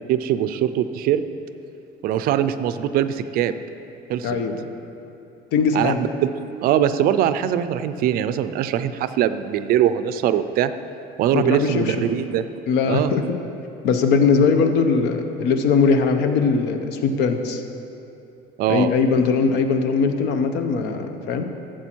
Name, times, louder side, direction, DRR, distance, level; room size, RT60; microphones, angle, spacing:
voice 1, 0.1-1.2 2.0-3.5 4.1-4.4 5.7-6.3 6.6-10.7 11.2-12.4 12.8-13.1 18.6-18.9, right 10 dB, 55° right, 12 dB, 0.4 m, -22 dB
voice 2, 4.2-4.6 5.5-6.0 11.3-11.9 12.7-13.2 13.8-17.6 18.7-21.4, left 5 dB, 70° left, 7 dB, 0.9 m, -20 dB
12.5 x 7.6 x 4.5 m, 2.8 s
cardioid pair, 160°, 18 cm